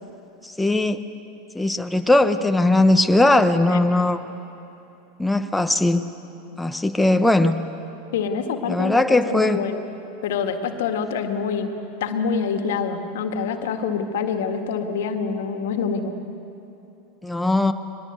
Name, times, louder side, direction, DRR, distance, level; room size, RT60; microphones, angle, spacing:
voice 1, 0.4-1.0 1.5-4.2 5.2-6.0 6.6-7.6 8.7-9.6 17.2-17.7, left 2 dB, 5° left, 7 dB, 1.1 m, -19 dB
voice 2, 8.1-9.8 10.2-11.7 12.0-16.1, left 6 dB, 70° left, 6 dB, 1.9 m, -26 dB
23.5 x 21.0 x 8.1 m, 2.9 s
hypercardioid pair, 95°, 0 cm